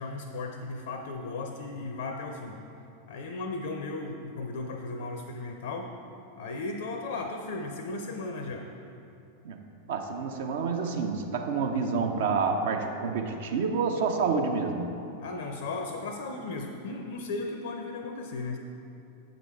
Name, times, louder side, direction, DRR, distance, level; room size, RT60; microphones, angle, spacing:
voice 1, 0.0-2.6 3.1-5.9 6.4-8.6 15.2-18.6, left 3 dB, 60° left, 4 dB, 0.5 m, -36 dB
voice 2, 9.9-14.9, right 5 dB, 55° right, 4 dB, 0.7 m, -28 dB
8.0 x 5.2 x 4.3 m, 2.8 s
figure-of-eight pair, 90°, 0 cm